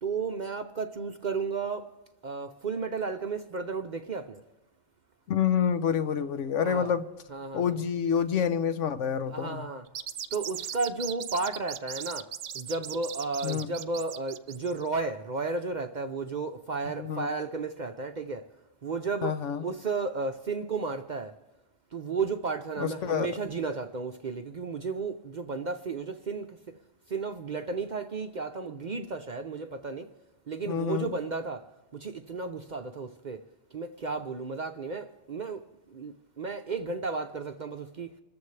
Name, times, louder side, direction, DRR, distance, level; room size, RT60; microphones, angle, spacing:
voice 1, 0.0-1.9 2.2-4.4 6.6-7.0 7.3-7.9 9.3-9.9 10.3-12.3 12.5-18.4 18.8-21.3 21.9-26.6 27.1-30.1 30.5-31.7 31.9-33.4 33.7-35.6 35.9-38.1, right 4 dB, 45° right, 0.6 m, -33 dB
voice 2, 5.3-7.1 7.5-9.7 13.4-13.7 17.0-17.3 19.2-19.6 22.8-23.3 30.7-31.1, left 8 dB, 70° left, 1.1 m, -28 dB
sound 1, 9.9-14.9, right 9 dB, 70° right, 1.0 m, -38 dB
27.0 x 14.0 x 3.2 m
omnidirectional pair, 1.3 m